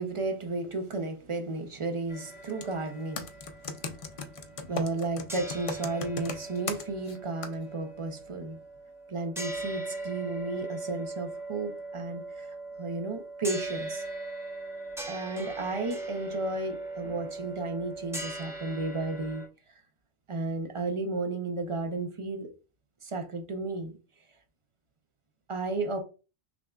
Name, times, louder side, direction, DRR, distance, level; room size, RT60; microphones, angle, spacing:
voice 1, 0.0-8.6 9.1-14.0 15.1-19.4 20.3-22.5 23.0-24.0 25.5-26.0, right 3 dB, 45° right, 0.4 m, -33 dB
sound 1, 2.1-5.0 5.3-19.5, right 2 dB, 5° right, 0.6 m, -40 dB
Computer keyboard, 2.5-2.7 3.2-7.2 7.4-7.5, left 4 dB, 65° left, 0.3 m, -36 dB
5.9 x 2.4 x 2.2 m
omnidirectional pair, 1.1 m